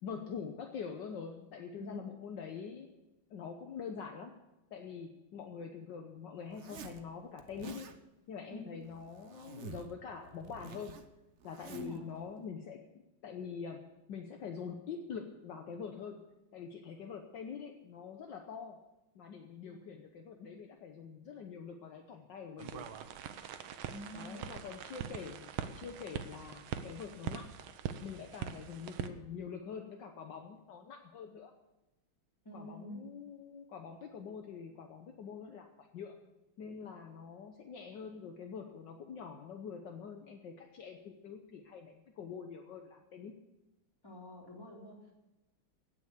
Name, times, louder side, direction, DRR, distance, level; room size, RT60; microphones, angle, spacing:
voice 1, 0.0-2.9 3.3-4.3 4.7-7.9 8.3-11.0 11.4-12.8 13.2-16.3 16.5-18.8 19.1-22.9 24.1-27.6 28.0-31.5 32.5-36.2 36.6-43.3, left 6 dB, 65° left, 4 dB, 1.6 m, -45 dB
Zipper (clothing), 6.5-7.0 7.4-8.0 8.8-9.9 10.2-12.0, right 6 dB, 50° right, 0.9 m, -50 dB
voice 2, 11.7-12.0 19.6-19.8 23.9-24.4 32.4-33.1 44.0-45.1, equal, 10° left, -2 dB, 3.5 m, -47 dB
sound 1, 22.6-29.1, right 9 dB, 80° right, 1.7 m, -43 dB
17.0 x 7.0 x 8.2 m, 0.98 s
omnidirectional pair, 2.2 m